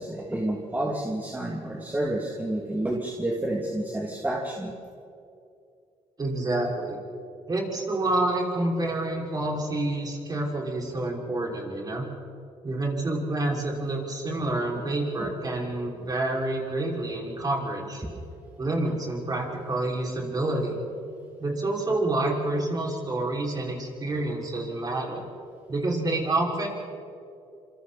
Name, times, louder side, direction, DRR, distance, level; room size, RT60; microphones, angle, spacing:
voice 1, 0.0-4.7 15.2-15.3 18.0-18.1, right 1 dB, 15° right, -1 dB, 2.8 m, -29 dB
voice 2, 6.2-7.0 7.5-12.1 12.6-18.0 18.6-20.8 21.4-25.2 25.7-26.7, right 2 dB, 30° right, -2 dB, 5.9 m, -28 dB
27.0 x 26.5 x 4.4 m, 2.6 s
cardioid pair, 85°, 12 cm